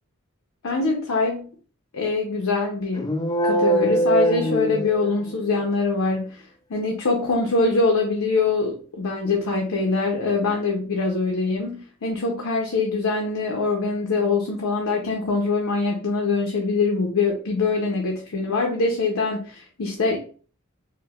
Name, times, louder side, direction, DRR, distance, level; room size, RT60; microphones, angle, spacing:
voice 1, 0.6-1.5 1.9-6.4 6.7-20.2, left 3 dB, 75° left, 1 dB, 0.6 m, -23 dB
sound 1, 2.9-5.5, right 1 dB, 20° left, 0.3 m, -22 dB
4.3 x 2.1 x 2.3 m, 0.41 s
head